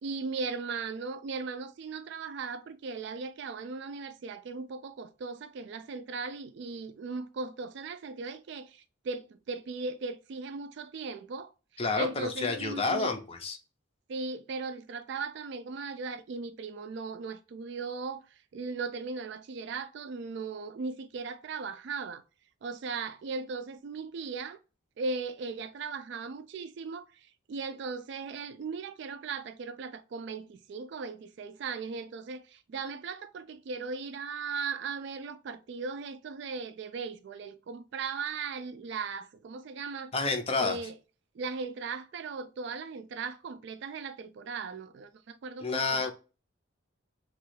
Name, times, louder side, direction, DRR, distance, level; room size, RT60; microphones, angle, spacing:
voice 1, 0.0-13.1 14.1-22.2 22.6-24.6 25.0-40.1 40.6-41.0 41.3-46.1, right 4 dB, 55° right, 0.3 m, -38 dB
voice 2, 11.8-13.6 40.1-40.8 45.6-46.1, left 4 dB, 30° left, 0.5 m, -29 dB
3.0 x 2.3 x 3.1 m
head